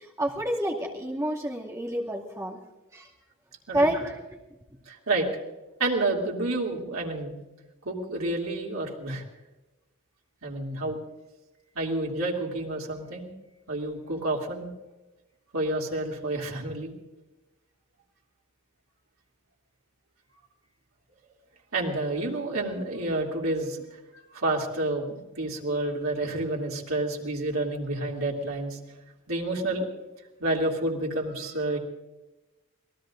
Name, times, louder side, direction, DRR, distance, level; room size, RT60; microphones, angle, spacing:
voice 1, 0.0-2.6 2.9-3.1 3.7-4.2, right 1 dB, 15° right, -2 dB, 2.2 m, -28 dB
voice 2, 4.9-5.3 5.8-7.4 7.8-9.2 10.4-11.0 11.7-13.3 13.7-14.7 15.5-16.9 21.7-23.8 24.3-28.8 29.3-29.9 30.4-31.8, right 2 dB, 85° right, -2 dB, 2.8 m, -29 dB
26.5 x 18.5 x 2.6 m, 1.1 s
head